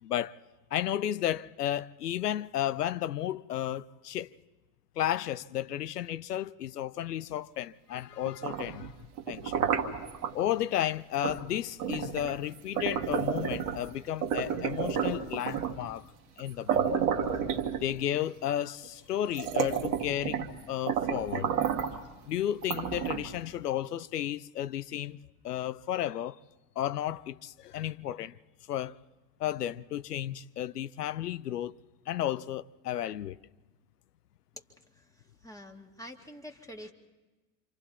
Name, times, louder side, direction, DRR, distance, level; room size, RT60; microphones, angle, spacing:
voice 1, 0.0-0.4 0.7-4.3 5.0-8.9 9.3-9.7 10.3-16.1 16.4-17.0 17.7-21.5 22.3-26.4 26.8-28.4 28.7-29.0 29.4-31.8 32.1-33.4, left 11 dB, 80° left, 0.6 m, -33 dB
sound 1, 8.3-10.3 11.2-11.4 11.8-13.9 14.2-15.9 16.4-16.5 16.7-18.2 18.8-18.9 19.3-20.6 20.9-22.0 22.6-23.4, right 8 dB, 65° right, 1.7 m, -31 dB
voice 2, 35.0-36.9, equal, 5° left, 2.0 m, -47 dB
27.5 x 26.0 x 4.2 m
figure-of-eight pair, 65°, 46 cm